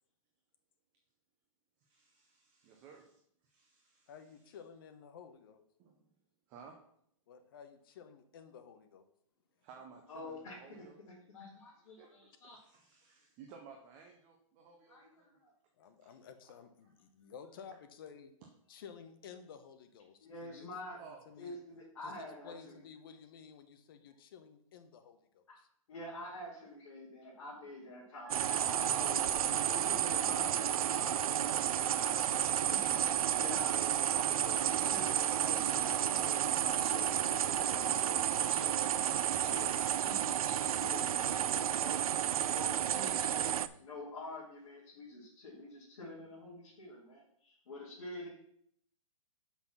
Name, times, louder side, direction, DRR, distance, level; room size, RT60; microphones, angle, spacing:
voice 1, 1.8-4.1 5.8-6.1 6.5-6.8 9.6-11.0 11.5-15.4 16.0-16.1 21.0-21.3, right 6 dB, 10° right, 2 dB, 0.3 m, -57 dB
voice 2, 4.1-5.6 7.3-9.0 15.8-18.3 18.7-21.6 22.0-25.7, left 7 dB, 40° left, 8 dB, 0.8 m, -53 dB
voice 3, 10.1-10.8 11.3-12.6 14.9-15.5 20.2-21.0 21.4-22.8 25.5-25.6 25.9-29.2 29.7-42.0 42.5-48.3, left 1 dB, 55° left, -7 dB, 2.7 m, -48 dB
Wind instrument woodwind instrument, 28.2-39.5, right 7 dB, 35° right, 0.9 m, -50 dB
sound 1, 28.3-43.7, right 10 dB, 85° right, 0.5 m, -31 dB
5.8 x 5.8 x 5.8 m, 0.68 s
hypercardioid pair, 170°, 18 cm